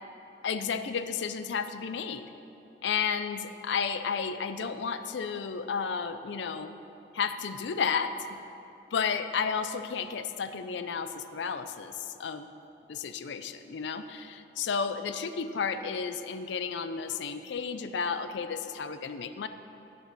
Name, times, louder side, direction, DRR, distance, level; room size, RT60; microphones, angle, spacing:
voice 1, 0.4-2.3 2.8-6.7 7.1-8.4 8.9-12.5 12.9-19.5, left 6 dB, 70° left, 10 dB, 0.4 m, -32 dB
10.5 x 8.5 x 4.0 m, 2.8 s
head